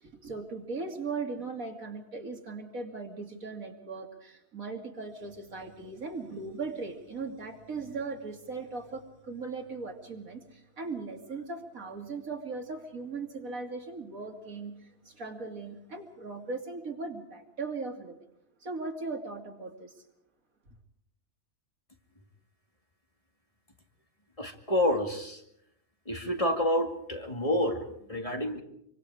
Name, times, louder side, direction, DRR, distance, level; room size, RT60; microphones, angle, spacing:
voice 1, 0.0-18.2 18.6-19.9, right 4 dB, 85° right, 4 dB, 3.0 m, -38 dB
voice 2, 24.4-25.4 26.1-28.6, left 1 dB, 25° left, 4 dB, 2.4 m, -29 dB
26.5 x 24.5 x 4.9 m, 0.73 s
omnidirectional pair, 1.4 m